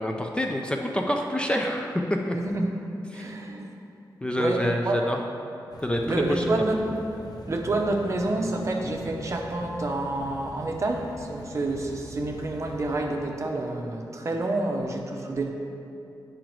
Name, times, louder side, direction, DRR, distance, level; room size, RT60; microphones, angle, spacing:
voice 1, 0.0-2.4 3.1-3.3 4.2-5.2 5.8-6.4, equal, 15° left, 2 dB, 0.4 m, -27 dB
voice 2, 2.3-2.7 3.1-3.7 4.4-5.0 6.1-6.9 7.5-15.5, right 2 dB, 40° right, 1 dB, 0.7 m, -28 dB
sound 1, 5.7-13.0, left 1 dB, 60° left, 0.6 m, -43 dB
10.5 x 4.9 x 3.1 m, 2.7 s
wide cardioid pair, 175°, 8 cm